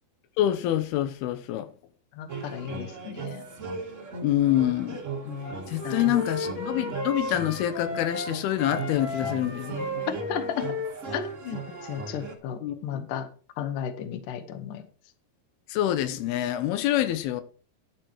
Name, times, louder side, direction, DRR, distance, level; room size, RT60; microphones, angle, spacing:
voice 1, 0.4-1.7 4.2-5.0 5.7-10.1 12.6-13.1 15.7-17.4, left 12 dB, 85° left, 2.8 m, -26 dB
voice 2, 2.2-3.4 5.3-5.6 5.8-6.0 10.3-10.7 11.1-11.6 11.9-13.3 13.6-14.8, left 9 dB, 70° left, 2.5 m, -34 dB
sound 1, 2.3-12.3, right 4 dB, 50° right, 0.8 m, -38 dB
Wind instrument woodwind instrument, 5.4-8.3 8.6-12.1, left 2 dB, 45° left, 3.0 m, -35 dB
11.0 x 7.8 x 4.5 m
omnidirectional pair, 4.3 m